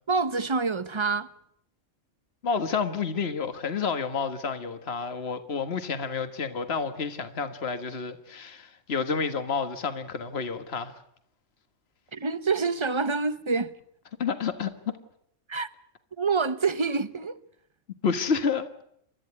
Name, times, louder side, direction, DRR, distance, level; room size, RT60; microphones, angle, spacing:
voice 1, 0.1-1.3 12.1-13.7 15.5-15.7 16.2-17.4, right 4 dB, 25° right, 0.9 m, -26 dB
voice 2, 2.4-11.0 14.2-15.0 18.0-18.8, left 5 dB, 55° left, 1.8 m, -30 dB
30.0 x 14.0 x 9.7 m
omnidirectional pair, 1.3 m